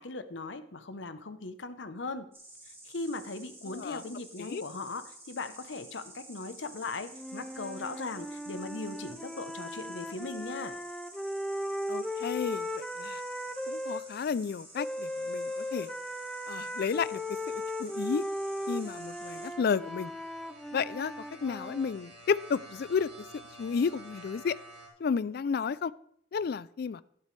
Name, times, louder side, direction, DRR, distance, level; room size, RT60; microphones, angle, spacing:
voice 1, 0.0-2.3 2.7-10.8, left 3 dB, 70° left, 11 dB, 0.9 m, -39 dB
Insect, 2.3-19.5, right 1 dB, 15° right, 3.3 m, -51 dB
voice 2, 3.7-4.0 4.4-4.6 11.9-13.2 13.7-15.9 16.5-18.2 18.7-20.1 20.7-21.1 21.4-23.1 23.6-24.6 25.0-25.9 26.3-27.0, left 6 dB, 55° left, 18 dB, 0.4 m, -32 dB
sound 1, 7.1-14.0 14.8-21.9, left 1 dB, 5° left, 0.5 m, -37 dB
sound 2, 12.5-24.9, right 1 dB, 60° right, 3.2 m, -54 dB
11.5 x 11.5 x 3.3 m, 0.66 s
head